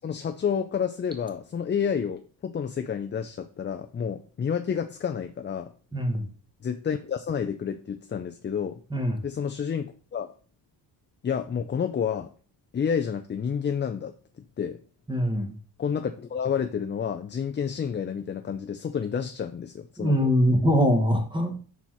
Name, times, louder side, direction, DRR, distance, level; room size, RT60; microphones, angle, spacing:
voice 1, 0.0-5.7 6.6-8.8 9.2-10.3 11.2-12.3 12.7-14.1 14.6-14.8 15.8-20.3, left 7 dB, 25° left, 7 dB, 0.4 m, -29 dB
voice 2, 5.9-6.3 8.9-9.2 15.1-15.5 20.0-21.6, equal, 10° right, 4 dB, 1.3 m, -23 dB
5.6 x 4.4 x 4.6 m, 0.41 s
cardioid pair, 120°, 44 cm